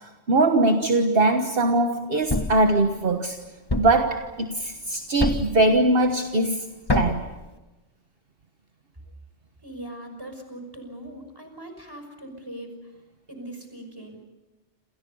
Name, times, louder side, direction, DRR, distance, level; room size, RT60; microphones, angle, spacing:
voice 1, 0.0-3.4 3.8-6.7 6.9-7.3, right 2 dB, 50° right, 1.5 m, -21 dB
Thump thud, 2.3-2.7 3.7-4.1 5.2-5.6 6.9-7.3, left 2 dB, 20° left, 1.3 m, -25 dB
voice 2, 9.6-12.9 13.3-14.3, right 1 dB, 20° right, 5.8 m, -40 dB
29.0 x 28.0 x 5.5 m
omnidirectional pair, 1.2 m